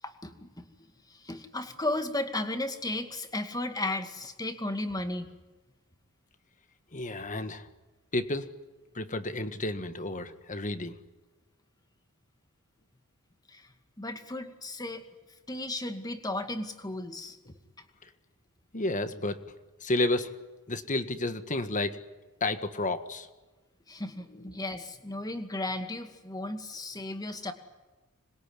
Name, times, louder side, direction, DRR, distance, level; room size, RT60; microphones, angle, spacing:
voice 1, 0.0-0.7 1.1-5.3 13.5-13.7 14.0-15.0 15.5-17.4 17.8-17.9 23.9-27.5, left 2 dB, 20° left, 7 dB, 2.2 m, -35 dB
voice 2, 6.9-7.7 8.1-8.5 9.0-11.0 18.0-18.1 18.7-19.5 19.8-20.3 20.7-22.0 22.4-23.3 24.3-24.5, left 2 dB, 35° left, 9 dB, 1.7 m, -31 dB
26.5 x 22.0 x 9.9 m, 1.2 s
head